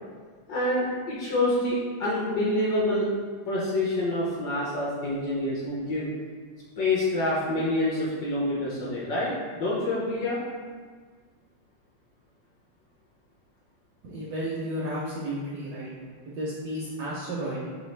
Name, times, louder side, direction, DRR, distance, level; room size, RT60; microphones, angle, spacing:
voice 1, 0.5-3.1 3.5-6.1 6.8-10.4, left 1 dB, 65° left, -6 dB, 1.0 m, -27 dB
voice 2, 14.0-15.9 16.3-17.7, right 1 dB, 70° right, -6 dB, 1.0 m, -32 dB
4.0 x 3.0 x 3.2 m, 1.6 s
omnidirectional pair, 2.4 m